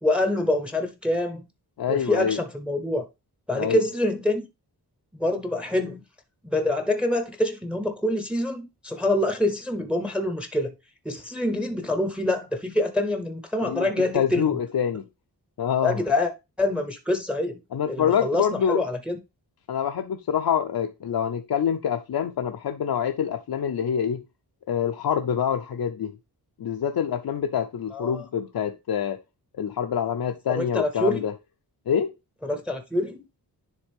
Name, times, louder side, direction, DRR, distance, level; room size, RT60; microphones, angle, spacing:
voice 1, 0.0-1.4 1.9-3.0 3.5-4.5 5.2-6.0 6.5-10.7 11.0-14.5 15.8-16.3 16.6-17.6 17.9-19.2 27.9-28.2 30.5-31.2 32.4-33.2, left 1 dB, 5° right, 0.7 m, -26 dB
voice 2, 1.8-2.4 3.5-3.8 13.6-15.0 15.6-16.0 17.7-18.8 19.7-24.2 24.7-26.1 26.6-29.2 29.5-31.3 31.9-32.1, left 8 dB, 60° left, 0.6 m, -26 dB
10.0 x 3.4 x 3.5 m
wide cardioid pair, 160°, 40 cm